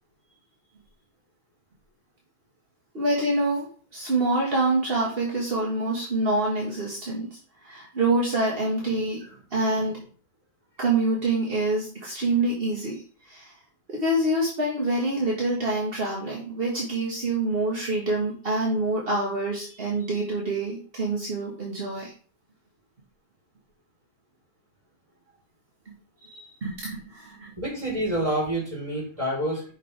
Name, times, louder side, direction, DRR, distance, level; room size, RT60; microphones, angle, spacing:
voice 1, 2.9-7.3 7.6-9.2 9.5-10.0 10.8-13.5 13.9-22.1 26.3-27.5, right 2 dB, 30° right, -3 dB, 1.1 m, -26 dB
voice 2, 27.6-29.7, right 1 dB, 10° right, -3 dB, 3.9 m, -28 dB
10.0 x 5.9 x 3.4 m, 0.42 s
omnidirectional pair, 3.5 m